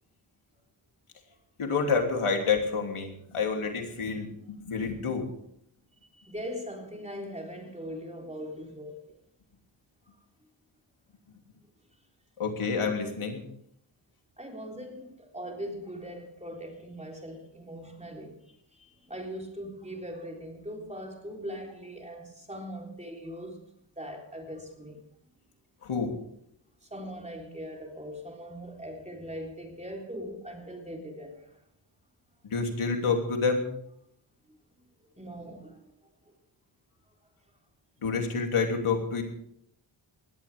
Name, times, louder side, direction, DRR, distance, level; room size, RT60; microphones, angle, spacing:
voice 1, 1.6-4.3 4.6-5.2 12.4-13.4 25.8-26.1 32.5-33.7 38.0-39.2, left 5 dB, 85° left, 3.1 m, -28 dB
voice 2, 6.0-9.2 14.4-23.6 24.0-25.0 26.8-31.6 34.5-34.6 35.2-36.1, equal, 15° right, 3.7 m, -41 dB
20.0 x 17.0 x 3.5 m
wide cardioid pair, 100°, 49 cm